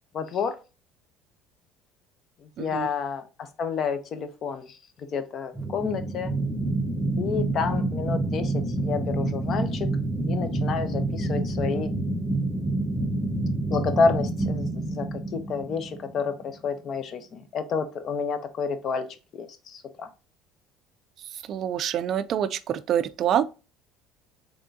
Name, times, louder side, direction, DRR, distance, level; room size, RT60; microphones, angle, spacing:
voice 1, 0.1-0.6 2.6-6.3 7.2-9.9 10.3-11.9 13.7-15.1 15.3-19.1 19.3-20.1, left 5 dB, 50° left, 0.7 m, -29 dB
voice 2, 2.6-2.9 21.5-23.5, right 10 dB, 50° right, 0.4 m, -26 dB
sound 1, 5.5-16.5, right 2 dB, 5° left, 1.3 m, -28 dB
3.6 x 3.5 x 2.6 m
supercardioid pair, 100°, 0 cm